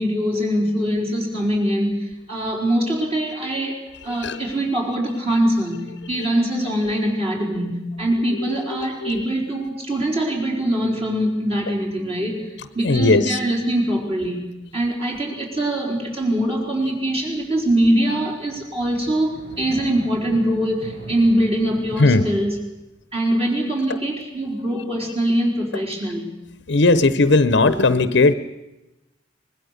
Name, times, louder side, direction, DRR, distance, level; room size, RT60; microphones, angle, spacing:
voice 1, 0.0-12.4 12.7-14.5 14.7-22.5 23.1-26.3, right 1 dB, 30° right, -1 dB, 4.5 m, -23 dB
voice 2, 4.0-4.6 5.3-5.4 6.1-6.3 8.3-9.2 12.8-13.4 22.0-22.3 23.9-24.0 26.7-28.3, left 3 dB, 65° left, 13 dB, 0.9 m, -18 dB
sound 1, 16.3-22.5, right 1 dB, 70° right, 7.1 m, -41 dB
24.0 x 20.5 x 6.7 m, 0.99 s
head